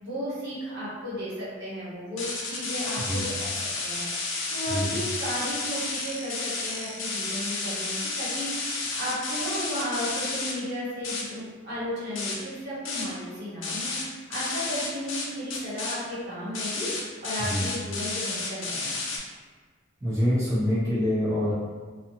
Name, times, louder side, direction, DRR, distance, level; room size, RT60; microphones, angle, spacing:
voice 1, 0.0-4.1 4.5-14.0 14.3-16.9 17.2-19.0, equal, 60° right, -10 dB, 1.2 m, -34 dB
sound 1, 2.2-10.5 11.0-11.2 11.7-11.9 12.1-12.4 12.8-13.1 13.6-14.0 14.3-15.2 15.5-15.9 16.5-19.2, left 3 dB, 85° left, 0.6 m, -31 dB
voice 2, 4.7-5.0 17.4-17.7 20.0-21.5, equal, 15° right, -13 dB, 0.8 m, -26 dB
2.5 x 2.4 x 2.8 m, 1.5 s
head